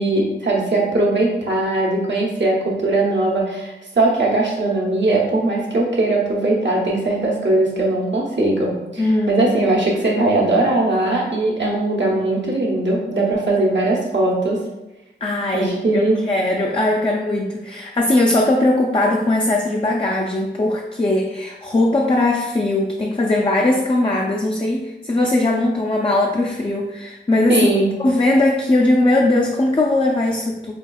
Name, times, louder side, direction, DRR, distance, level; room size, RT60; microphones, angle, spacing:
voice 1, 0.0-14.6 15.5-16.2 27.5-28.0, right 2 dB, 70° right, -3 dB, 0.9 m, -19 dB
voice 2, 9.0-9.5 15.2-27.7 28.0-30.7, left 2 dB, 30° left, 0 dB, 0.4 m, -19 dB
5.0 x 2.4 x 2.3 m, 1.0 s
wide cardioid pair, 40°, 19 cm